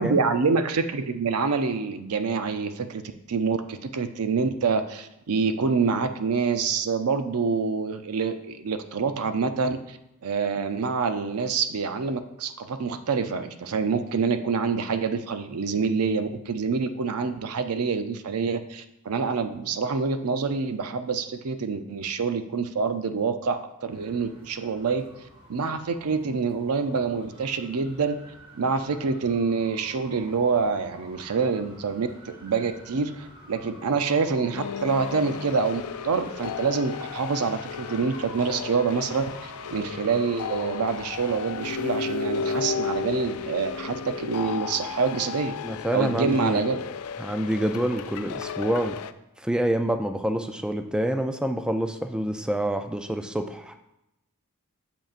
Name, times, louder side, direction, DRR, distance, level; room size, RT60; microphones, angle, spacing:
voice 1, 0.0-3.0 3.3-25.1 25.5-28.2 28.5-45.5 45.9-46.8, right 5 dB, 85° right, 9 dB, 0.5 m, -26 dB
sound 1, 23.9-43.5, equal, 25° right, 1.2 m, -49 dB
sound 2, 34.6-49.1, left 6 dB, 75° left, 0.4 m, -34 dB
voice 2, 45.6-46.6 47.2-49.0 49.4-53.7, right 1 dB, 5° right, 6 dB, 0.3 m, -27 dB
7.8 x 7.0 x 2.5 m, 0.88 s
head